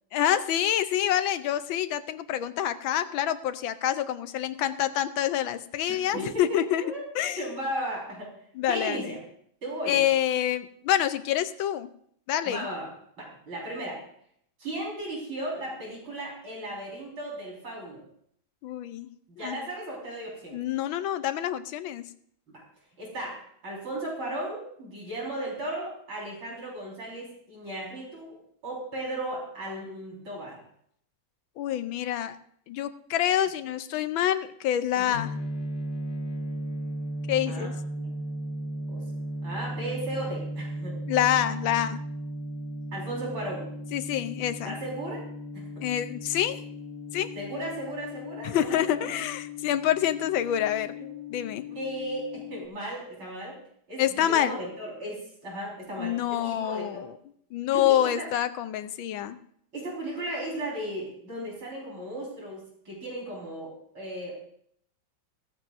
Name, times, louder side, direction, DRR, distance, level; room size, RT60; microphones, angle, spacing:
voice 1, 0.1-6.8 7.1-7.4 8.6-9.1 9.9-11.9 12.3-12.7 18.6-19.1 19.4-19.6 20.5-22.1 31.6-32.4 32.7-35.3 37.3-37.7 41.1-42.0 43.9-44.8 45.8-46.6 47.1-47.3 48.4-51.0 51.3-51.7 54.0-54.6 56.0-57.1 57.5-59.4, left 11 dB, 85° left, 11 dB, 1.5 m, -27 dB
voice 2, 6.1-7.0 7.4-8.3 8.7-9.2 9.6-10.0 12.4-12.9 13.2-14.0 14.6-18.0 19.3-20.6 22.5-22.6 23.0-30.6 34.9-35.2 37.5-38.2 38.9-39.0 39.4-41.0 42.9-43.7 44.7-45.2 45.5-45.7 47.3-49.1 51.8-53.6 53.9-57.1 57.7-58.1 59.7-64.3, right 1 dB, 85° right, -3 dB, 5.7 m, -36 dB
sound 1, 35.1-52.6, equal, 35° left, 1.4 m, -36 dB
16.0 x 14.5 x 2.6 m, 0.68 s
omnidirectional pair, 2.2 m